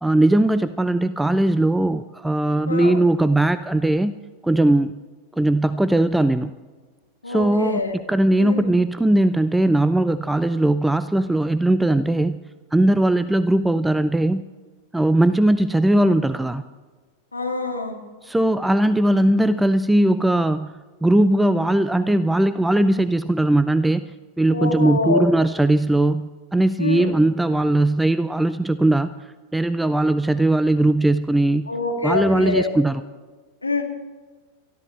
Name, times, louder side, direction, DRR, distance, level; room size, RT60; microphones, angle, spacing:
voice 1, 0.0-4.1 4.4-4.9 5.4-6.5 7.3-12.4 12.7-14.4 14.9-16.6 18.2-20.7 21.0-24.0 24.4-29.1 29.5-31.7 32.0-33.0, right 1 dB, 5° right, 14 dB, 0.4 m, -19 dB
voice 2, 2.7-3.0 7.2-8.0 8.4-8.7 17.3-18.0 24.5-25.3 26.8-27.1 31.7-32.7 33.6-33.8, left 3 dB, 80° left, 2 dB, 2.2 m, -25 dB
23.0 x 13.5 x 3.2 m, 1.4 s
figure-of-eight pair, 90°, 0 cm